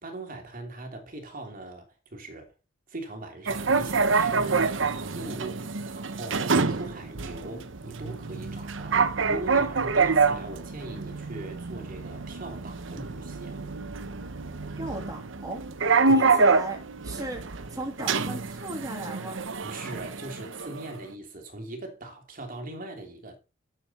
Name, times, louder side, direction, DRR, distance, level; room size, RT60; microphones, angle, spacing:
voice 1, 0.0-2.5 2.9-4.8 5.1-13.6 16.1-16.3 19.6-23.4, right 2 dB, 45° right, 3.0 m, -40 dB
sound 1, 3.5-21.0, right 4 dB, 65° right, 0.9 m, -27 dB
voice 2, 14.8-15.6 16.1-16.8 17.0-19.4, right 2 dB, 20° right, 2.6 m, -35 dB
12.5 x 7.4 x 4.3 m
head